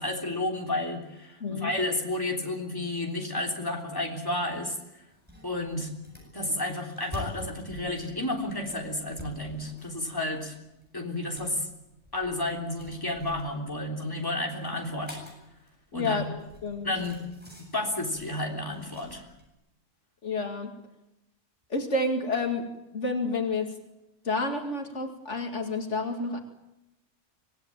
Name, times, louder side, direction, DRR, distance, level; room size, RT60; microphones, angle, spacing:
voice 1, 0.0-4.8 5.4-5.9 6.3-10.6 10.9-11.7 12.1-15.2 15.9-16.2 16.8-17.2 17.6-19.3, left 1 dB, 15° left, 0 dB, 3.4 m, -31 dB
sound 1, 5.1-19.5, left 2 dB, 10° right, 8.0 m, -48 dB
voice 2, 15.9-16.9 20.2-20.7 21.7-23.7 24.2-26.4, left 2 dB, 70° left, 4 dB, 2.6 m, -30 dB
25.0 x 18.5 x 8.9 m, 0.93 s
omnidirectional pair, 1.3 m